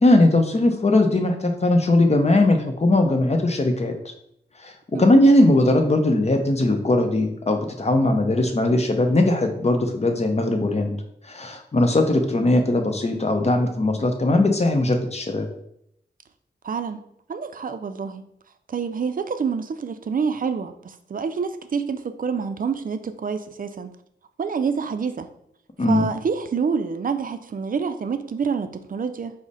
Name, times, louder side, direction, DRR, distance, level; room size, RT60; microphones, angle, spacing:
voice 1, 0.0-3.9 4.6-10.9 11.2-15.5 25.8-26.1, left 1 dB, 35° left, 5 dB, 0.7 m, -19 dB
voice 2, 16.6-17.0 17.3-18.2 18.7-23.9 24.4-25.3 25.8-29.3, right 5 dB, 50° right, 9 dB, 0.4 m, -27 dB
4.8 x 2.1 x 4.0 m, 0.72 s
wide cardioid pair, 70°, 18 cm